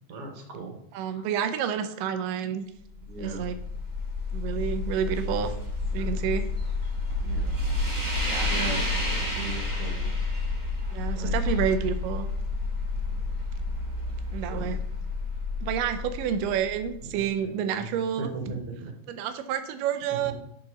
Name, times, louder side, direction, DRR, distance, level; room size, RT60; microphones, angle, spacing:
voice 1, 0.1-0.8 1.1-1.3 3.1-3.5 5.9-6.3 7.2-7.5 8.4-10.1 11.1-11.5 12.9-13.3 14.5-14.7 17.0-17.9 18.2-18.9 20.2-20.3, right 4 dB, 55° right, 1 dB, 2.0 m, -38 dB
voice 2, 0.9-2.6 3.2-3.6 4.3-5.5 5.9-6.4 8.2-8.5 10.9-12.3 14.3-14.8 15.6-18.3 19.1-20.3, right 8 dB, 90° right, 9 dB, 2.3 m, -29 dB
sound 1, 2.9-17.1, left 3 dB, 15° right, 1.8 m, -30 dB
11.0 x 4.1 x 3.8 m, 0.73 s
omnidirectional pair, 3.7 m